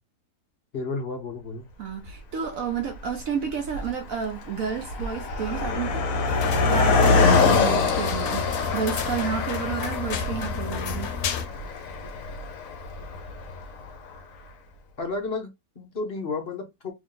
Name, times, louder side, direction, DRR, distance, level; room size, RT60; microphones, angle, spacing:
voice 1, 0.7-1.6 15.0-16.9, left 3 dB, 45° left, 1.0 m, -32 dB
voice 2, 1.8-6.0 6.7-11.1, right 7 dB, 65° right, 1.1 m, -31 dB
Car passing by, 2.1-2.2 3.0-3.2 3.5-13.9, left 4 dB, 65° left, 1.3 m, -25 dB
sound 1, 6.2-11.5, left 6 dB, 80° left, 1.1 m, -32 dB
3.6 x 2.7 x 3.7 m
omnidirectional pair, 1.6 m